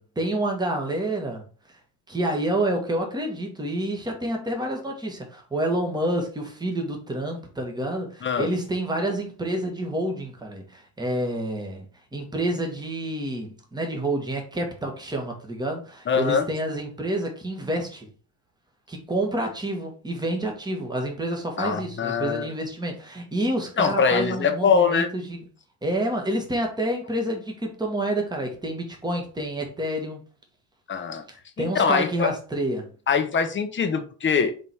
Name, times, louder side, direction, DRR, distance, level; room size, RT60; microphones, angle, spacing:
voice 1, 0.0-1.4 2.1-11.9 12.1-18.1 18.9-25.4 25.8-30.2 31.6-32.9, right 1 dB, 10° right, 1.7 m, -28 dB
voice 2, 16.1-16.5 21.6-22.5 23.8-25.1 30.9-31.2 31.6-32.3 33.1-34.5, left 6 dB, 25° left, 1.1 m, -23 dB
5.3 x 4.0 x 4.7 m
cardioid pair, 120°, 44 cm